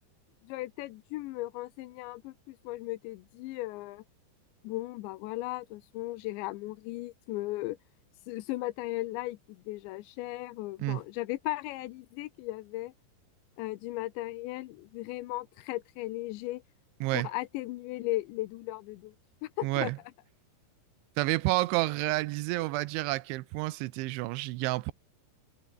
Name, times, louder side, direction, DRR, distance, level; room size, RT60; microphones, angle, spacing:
voice 1, 0.4-4.0 4.6-7.8 8.3-12.9 13.6-16.6 17.1-19.1 19.4-19.9, left 18 dB, 85° left, 3.0 m, -36 dB
voice 2, 19.6-20.0 21.2-24.9, right 20 dB, 85° right, 3.1 m, -30 dB
omnidirectional pair, 5.4 m